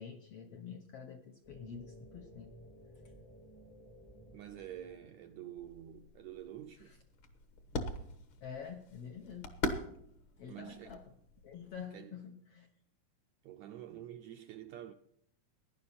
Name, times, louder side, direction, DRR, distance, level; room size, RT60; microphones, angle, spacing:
voice 1, 0.0-2.6 6.8-7.0 8.4-9.6 10.4-11.1 11.4-12.7, left 7 dB, 70° left, 1.5 m, -47 dB
sound 1, 1.4-6.5, equal, 20° left, 0.6 m, -57 dB
voice 2, 4.3-7.0 10.5-11.0 11.9-12.2 13.4-14.9, right 11 dB, 80° right, 1.6 m, -48 dB
sound 2, 5.6-11.9, left 2 dB, 50° left, 1.6 m, -43 dB
16.5 x 11.0 x 4.2 m
omnidirectional pair, 3.9 m